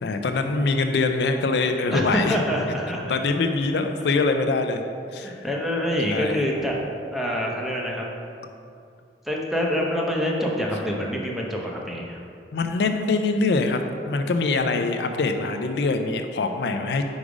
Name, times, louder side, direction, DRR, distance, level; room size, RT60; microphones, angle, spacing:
voice 1, 0.0-2.3 3.1-4.8 5.1-5.3 6.1-6.4 12.5-13.8 14.1-17.0, left 3 dB, 70° left, 6 dB, 0.4 m, -23 dB
voice 2, 1.9-3.2 5.2-6.8 7.1-8.0 9.2-12.2, equal, ahead, -2 dB, 0.7 m, -26 dB
5.2 x 4.9 x 4.9 m, 2.5 s
head